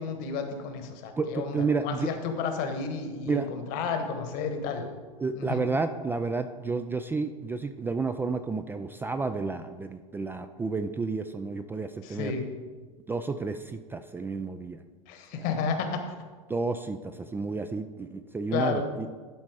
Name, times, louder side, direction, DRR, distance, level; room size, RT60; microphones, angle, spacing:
voice 1, 0.0-4.9 5.3-5.6 12.0-12.5 15.1-16.1 18.5-18.9, left 5 dB, 50° left, 6 dB, 1.3 m, -32 dB
voice 2, 1.2-2.1 3.3-3.5 5.2-12.3 13.1-14.8 15.3-15.5 16.5-19.1, right 4 dB, 10° right, 9 dB, 0.3 m, -31 dB
11.5 x 4.1 x 4.8 m, 1.4 s
hypercardioid pair, 85°, 19 cm